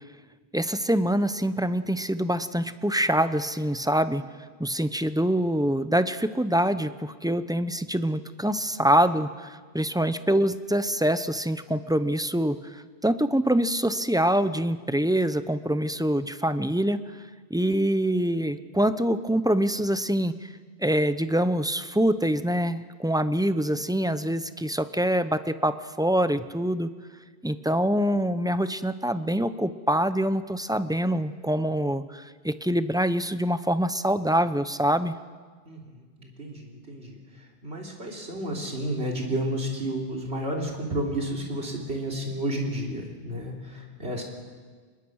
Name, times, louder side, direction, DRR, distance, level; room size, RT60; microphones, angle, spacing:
voice 1, 0.5-4.2 4.6-17.0 17.5-20.3 20.8-26.9 27.4-35.1, right 1 dB, 5° right, 12 dB, 0.5 m, -25 dB
voice 2, 35.7-37.2 37.6-44.2, right 1 dB, 75° right, 0 dB, 3.7 m, -31 dB
25.5 x 21.5 x 6.4 m, 1.5 s
omnidirectional pair, 1.1 m